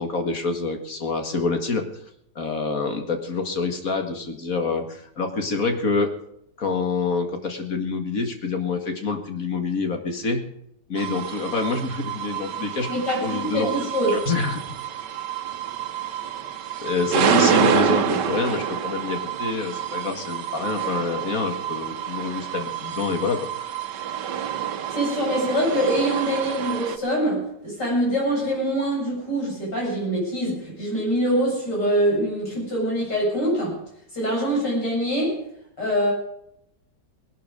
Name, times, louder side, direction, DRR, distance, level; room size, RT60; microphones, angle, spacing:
voice 1, 0.0-1.9 2.4-6.1 6.6-10.5 10.9-12.9 13.2-13.7 14.1-14.8 16.8-23.7, left 4 dB, 55° left, 5 dB, 2.2 m, -26 dB
sound 1, 11.0-27.0, right 8 dB, 90° right, 1.6 m, -28 dB
voice 2, 12.9-14.1 17.3-17.9 24.9-33.8 34.1-35.4 35.8-36.1, equal, 90° left, -3 dB, 8.4 m, -24 dB
18.5 x 12.0 x 5.2 m, 0.72 s
omnidirectional pair, 1.8 m